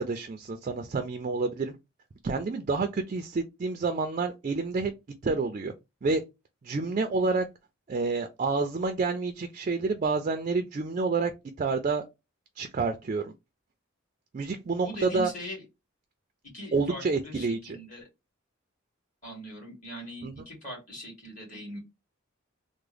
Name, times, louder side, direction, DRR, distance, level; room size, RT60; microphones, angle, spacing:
voice 1, 0.0-1.7 2.2-4.9 5.2-5.7 6.0-6.2 6.6-7.4 7.9-11.3 11.6-12.0 12.6-13.3 14.3-15.3 16.7-17.8 20.2-20.3, right 4 dB, 40° right, 0.4 m, -28 dB
voice 2, 14.8-15.6 16.5-18.1 19.2-21.8, equal, 40° left, 2.0 m, -41 dB
3.5 x 2.0 x 3.3 m
head